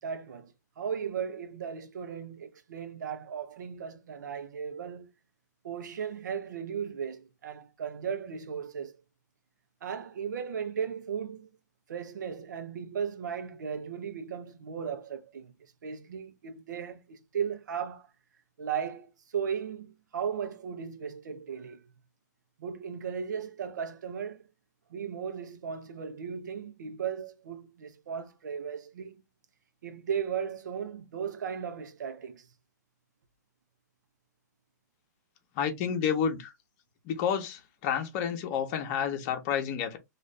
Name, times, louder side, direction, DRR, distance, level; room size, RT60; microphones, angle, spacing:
voice 1, 0.0-5.1 5.6-9.0 9.8-11.5 11.9-15.5 15.8-18.1 18.6-21.8 22.6-24.4 24.9-29.2 29.8-32.5, right 7 dB, 80° right, 0.7 m, -36 dB
voice 2, 35.6-36.5 37.1-40.0, left 8 dB, 40° left, 0.8 m, -30 dB
2.5 x 2.5 x 3.2 m
hypercardioid pair, 140°, 10 cm